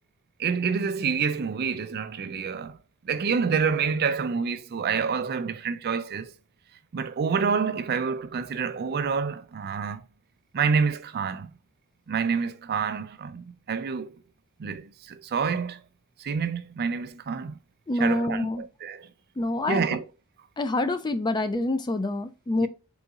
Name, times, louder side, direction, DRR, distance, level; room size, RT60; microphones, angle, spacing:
voice 1, 0.4-2.8 3.1-6.3 6.9-10.0 10.5-11.5 12.1-14.2 14.6-15.8 16.2-17.6 18.0-19.1 19.7-20.0 22.6-22.7, right 5 dB, 45° right, 0.4 m, -27 dB
voice 2, 17.9-18.6 19.4-19.9 20.6-22.7, left 2 dB, 20° left, 0.4 m, -26 dB
3.9 x 3.9 x 2.3 m
head